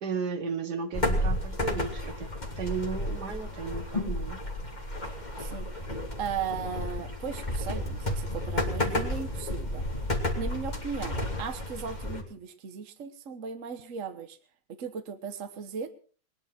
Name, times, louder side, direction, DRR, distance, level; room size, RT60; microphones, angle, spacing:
voice 1, 0.0-2.3 2.6-4.4, right 5 dB, 65° right, 9 dB, 2.0 m, -34 dB
sound 1, 0.9-12.2, left 1 dB, 25° left, 2.9 m, -32 dB
voice 2, 6.2-9.8 10.3-14.4 14.8-15.9, right 6 dB, 50° right, 8 dB, 1.5 m, -37 dB
20.5 x 11.0 x 5.8 m, 0.41 s
omnidirectional pair, 1.9 m